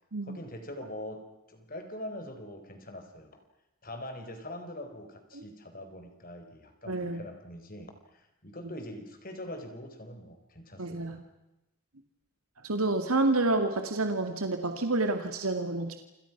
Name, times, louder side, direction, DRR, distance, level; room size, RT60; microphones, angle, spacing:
voice 1, 0.2-3.4 3.8-11.2, left 1 dB, 40° left, 6 dB, 4.4 m, -43 dB
voice 2, 6.9-7.2 10.8-11.2 12.6-16.0, right 2 dB, 90° right, 6 dB, 2.3 m, -28 dB
29.5 x 27.5 x 6.1 m, 0.95 s
head